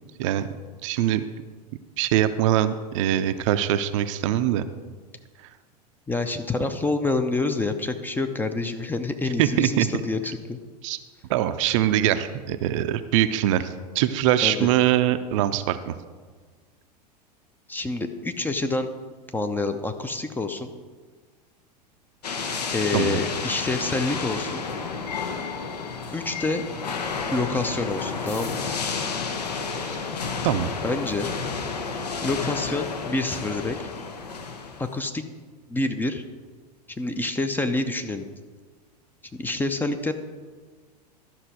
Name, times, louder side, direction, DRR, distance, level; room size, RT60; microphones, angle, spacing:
voice 1, 0.8-1.2 2.0-4.7 9.4-9.9 10.8-11.0 11.3-15.9 22.9-23.2 30.4-30.7, right 12 dB, 50° right, 11 dB, 0.5 m, -23 dB
voice 2, 6.1-10.6 14.4-14.7 17.7-18.9 19.3-20.7 22.7-24.6 26.1-26.6 27.3-28.6 30.8-31.3 32.2-33.8 34.8-35.2 35.7-36.2 37.0-38.3 39.3-40.1, left 2 dB, 10° left, 8 dB, 0.5 m, -27 dB
sound 1, 22.2-34.9, left 5 dB, 70° left, 0.9 m, -31 dB
12.0 x 5.9 x 4.6 m, 1.5 s
figure-of-eight pair, 85°, 21 cm